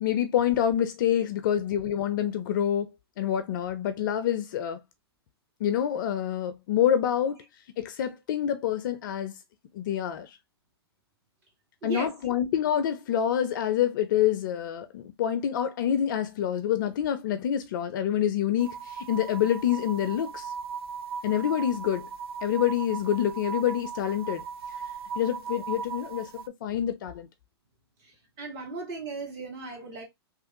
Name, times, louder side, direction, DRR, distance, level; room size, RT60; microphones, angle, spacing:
voice 1, 0.0-2.9 3.2-4.8 5.6-7.4 7.8-9.3 9.7-10.4 11.8-20.5 21.2-22.1 22.4-24.4 25.2-27.3, left 10 dB, 50° left, 0.5 m, -27 dB
sound 1, 18.6-26.5, right 6 dB, 65° right, 0.4 m, -38 dB
voice 2, 28.0-30.0, right 3 dB, 35° right, 2.1 m, -37 dB
3.3 x 2.4 x 2.7 m
figure-of-eight pair, 110°, 14 cm